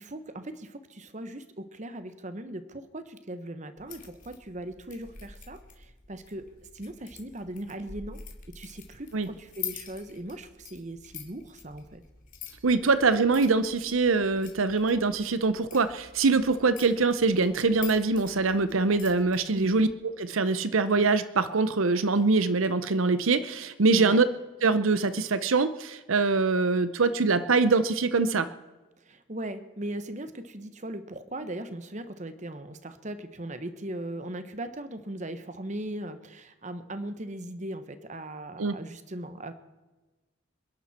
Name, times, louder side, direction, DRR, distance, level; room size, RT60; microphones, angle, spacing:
voice 1, 0.0-6.5 6.7-8.2 8.5-12.0 19.5-19.7 24.0-24.2 29.0-39.5, right 1 dB, 35° right, 10 dB, 1.2 m, -39 dB
sound 1, 3.8-19.9, left 8 dB, 40° left, 2.5 m, -46 dB
voice 2, 12.6-24.3 24.6-28.5 38.6-38.8, right 4 dB, 85° right, 13 dB, 0.8 m, -24 dB
27.5 x 11.0 x 4.3 m, 1.2 s
head